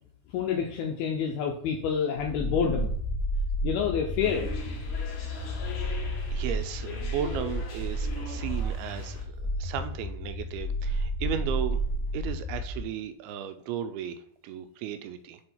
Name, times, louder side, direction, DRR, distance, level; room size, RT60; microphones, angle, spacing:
voice 1, 0.3-2.9 3.6-4.5, left 7 dB, 80° left, 1 dB, 2.4 m, -28 dB
sound 1, 2.1-12.8, equal, 25° left, 1.2 m, -31 dB
sound 2, 4.2-9.2, left 3 dB, 60° left, 2.7 m, -42 dB
voice 2, 6.3-11.8 12.1-15.4, right 9 dB, 85° right, 8 dB, 2.4 m, -35 dB
7.9 x 3.8 x 4.3 m, 0.64 s
omnidirectional pair, 4.9 m